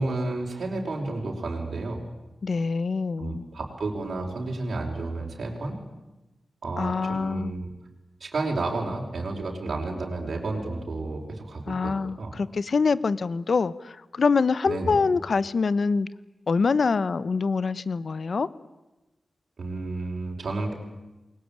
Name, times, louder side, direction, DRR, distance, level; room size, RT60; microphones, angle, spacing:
voice 1, 0.0-2.0 3.2-5.8 6.6-7.7 8.2-12.3 14.7-15.0 19.6-20.8, right 2 dB, 60° right, -1 dB, 4.9 m, -31 dB
voice 2, 2.4-3.4 6.8-7.6 11.7-16.1 16.5-18.5, left 4 dB, 55° left, 17 dB, 0.9 m, -25 dB
28.5 x 21.5 x 8.8 m, 1.0 s
wide cardioid pair, 140°, 0 cm